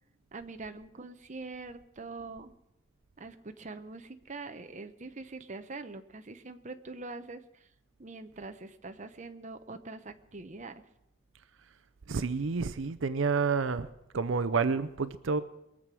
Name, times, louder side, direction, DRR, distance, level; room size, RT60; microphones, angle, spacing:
voice 1, 0.3-2.5 3.2-7.7 8.0-10.8, right 3 dB, 35° right, 8 dB, 0.8 m, -44 dB
voice 2, 12.1-13.9 14.1-15.4, right 4 dB, 70° right, 13 dB, 0.6 m, -29 dB
22.5 x 7.5 x 6.2 m, 0.83 s
head